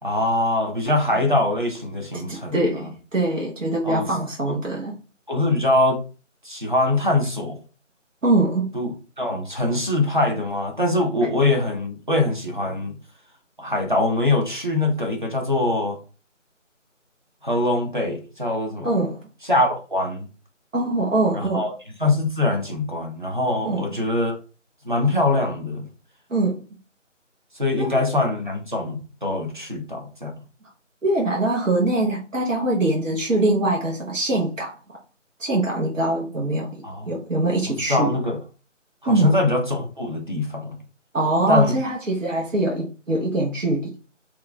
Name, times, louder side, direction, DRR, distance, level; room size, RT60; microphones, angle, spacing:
voice 1, 0.0-2.9 3.8-4.1 4.5-4.6 5.3-6.0 6.4-7.6 8.7-13.0 13.6-16.0 17.4-18.9 19.5-20.3 21.3-21.7 22.0-24.4 24.8-25.9 27.5-30.3 36.8-37.1 37.9-38.4 39.0-40.8 41.5-41.8, left 2 dB, 40° right, 0.6 m, -23 dB
voice 2, 2.1-5.0 8.2-8.7 18.8-19.3 20.7-21.6 23.6-24.0 26.3-26.6 27.8-28.0 31.0-34.8 35.4-36.8 37.1-38.1 39.1-39.3 41.1-44.0, right 2 dB, 80° right, 0.9 m, -23 dB
2.9 x 2.3 x 2.3 m
figure-of-eight pair, 170°, 38 cm